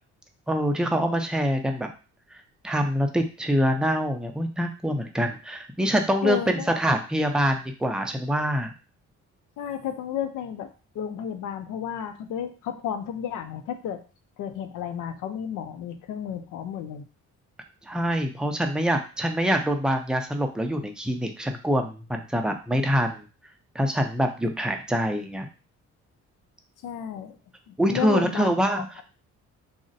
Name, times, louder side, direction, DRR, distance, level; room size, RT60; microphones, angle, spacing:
voice 1, 0.5-1.9 2.3-8.7 17.9-23.2 23.7-25.5 27.8-28.9, equal, 5° right, 4 dB, 0.4 m, -25 dB
voice 2, 6.2-6.7 9.6-14.0 14.4-17.0 24.4-24.6 26.8-27.4 27.7-29.0, left 9 dB, 85° left, 8 dB, 0.5 m, -32 dB
2.5 x 2.1 x 3.8 m, 0.34 s
cardioid pair, 90°, 30 cm